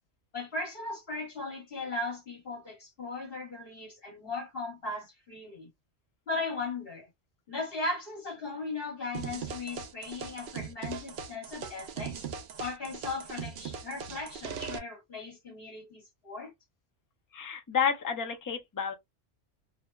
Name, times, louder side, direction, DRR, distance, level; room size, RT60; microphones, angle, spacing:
voice 1, 0.3-5.7 6.3-7.1 7.5-12.3 12.6-16.5, left 3 dB, 55° left, 1.5 m, -37 dB
sound 1, 9.1-14.8, right 7 dB, 65° right, 0.8 m, -39 dB
voice 2, 17.3-18.9, left 7 dB, 25° left, 0.4 m, -30 dB
2.7 x 2.1 x 2.2 m
omnidirectional pair, 1.2 m